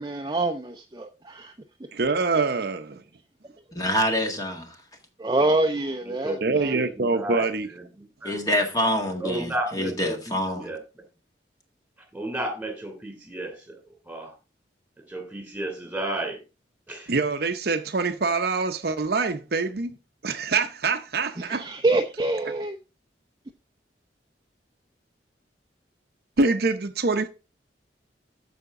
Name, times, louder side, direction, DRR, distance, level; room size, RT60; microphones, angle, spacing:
voice 1, 0.0-1.5 5.2-6.8 21.4-22.8, right 2 dB, 25° right, 0.6 m, -26 dB
voice 2, 1.9-3.0 6.4-7.7 17.1-20.0 20.2-21.7 26.4-27.3, right 3 dB, 60° right, 0.7 m, -25 dB
voice 3, 3.7-4.8 8.2-10.7, left 1 dB, 20° left, 1.8 m, -26 dB
voice 4, 6.0-7.4 7.7-8.3 9.2-10.1 10.5-11.0 12.1-14.3 15.0-16.4 16.9-17.1, right 1 dB, 5° right, 3.0 m, -33 dB
14.0 x 5.1 x 3.7 m
head